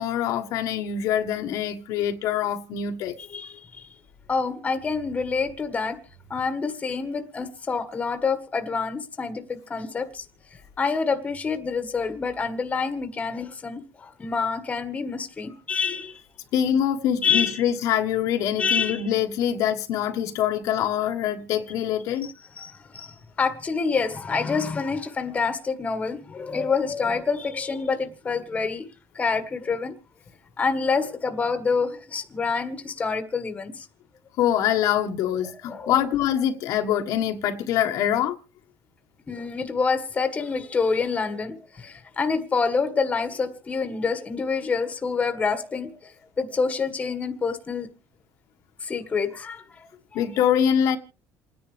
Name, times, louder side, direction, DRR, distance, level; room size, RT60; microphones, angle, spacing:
voice 1, 0.0-3.1 16.5-22.3 34.4-38.3 50.1-51.0, left 9 dB, 65° left, 1.4 m, -24 dB
voice 2, 4.3-6.0 6.3-10.2 10.8-16.2 17.2-17.6 18.6-19.0 22.6-28.9 29.1-29.9 30.6-33.9 35.7-36.0 39.3-46.1 46.4-47.9 48.8-50.2, left 5 dB, 20° left, 1.7 m, -27 dB
28.5 x 10.0 x 3.4 m
cardioid pair, 135°, 6 cm